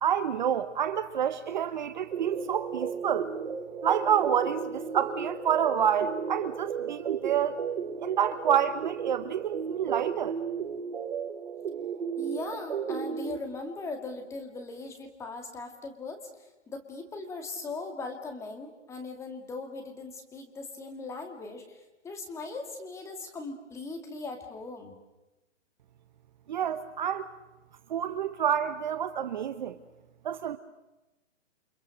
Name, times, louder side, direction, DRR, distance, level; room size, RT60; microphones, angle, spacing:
voice 1, 0.0-3.3 3.8-7.6 8.0-10.4 26.5-27.3 27.9-29.8 30.2-30.6, right 9 dB, 40° right, 11 dB, 1.0 m, -28 dB
sound 1, 2.1-13.4, right 7 dB, 55° right, 1.6 m, -34 dB
voice 2, 12.2-25.0, left 3 dB, 10° left, 5 dB, 2.3 m, -39 dB
29.5 x 25.5 x 6.5 m, 1.0 s
hypercardioid pair, 155°, 37 cm